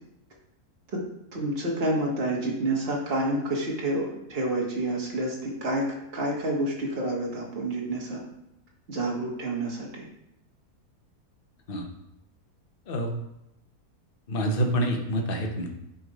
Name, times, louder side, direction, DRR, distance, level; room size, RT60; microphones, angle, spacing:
voice 1, 1.3-5.9 6.1-8.2 8.9-10.1, right 1 dB, 40° right, -2 dB, 1.8 m, -28 dB
voice 2, 14.3-15.7, right 1 dB, 40° left, 3 dB, 1.1 m, -27 dB
7.9 x 4.1 x 5.1 m, 0.84 s
omnidirectional pair, 1.7 m